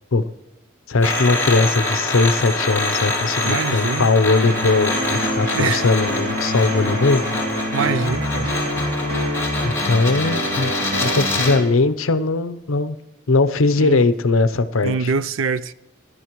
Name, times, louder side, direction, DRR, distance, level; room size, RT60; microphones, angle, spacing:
voice 1, 0.9-7.2 9.6-10.7 11.0-13.0 13.3-15.1, left 3 dB, 85° left, 0.7 m, -19 dB
sound 1, 1.0-11.6, left 2 dB, 10° left, 2.5 m, -25 dB
voice 2, 3.4-4.1 5.5-5.8 7.7-8.5 13.8-14.0 14.8-15.7, right 5 dB, 75° right, 0.5 m, -24 dB
sound 2, 4.4-11.6, equal, 50° right, 2.6 m, -26 dB
18.0 x 11.5 x 3.1 m
head